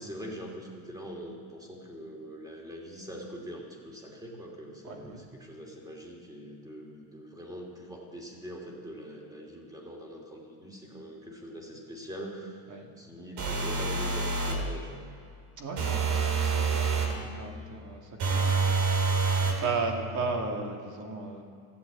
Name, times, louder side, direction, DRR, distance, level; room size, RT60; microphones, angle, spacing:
voice 1, 0.0-15.0, equal, 10° right, -1 dB, 2.8 m, -43 dB
voice 2, 4.8-5.3 12.7-12.9 15.6-16.2 16.5-21.4, right 3 dB, 45° right, 2 dB, 2.3 m, -36 dB
sound 1, 13.4-14.7 15.8-17.2 18.2-19.6, right 4 dB, 65° right, 2.7 m, -27 dB
15.0 x 8.4 x 8.4 m, 2.4 s
cardioid pair, 140°, 42 cm